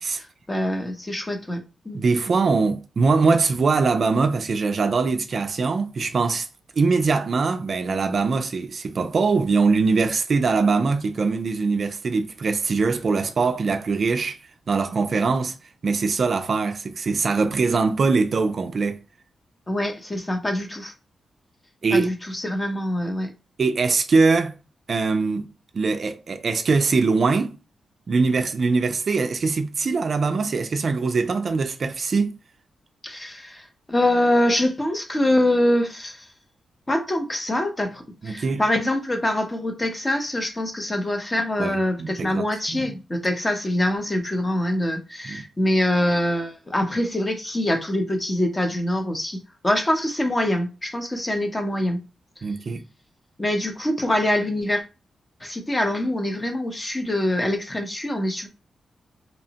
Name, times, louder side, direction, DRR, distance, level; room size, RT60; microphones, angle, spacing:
voice 1, 0.2-2.0 19.7-20.9 21.9-23.3 33.0-36.3 36.9-52.0 53.4-54.8 55.4-58.5, left 1 dB, 20° left, 0.6 m, -24 dB
voice 2, 1.9-6.5 6.8-14.4 14.7-15.5 15.8-19.0 21.8-22.1 23.6-24.5 24.9-25.5 25.7-27.5 28.1-32.3 38.2-38.6 41.6-42.9 45.3-45.4 52.4-52.8, right 4 dB, 50° right, 0.3 m, -22 dB
2.8 x 2.0 x 2.7 m
wide cardioid pair, 110°, 0 cm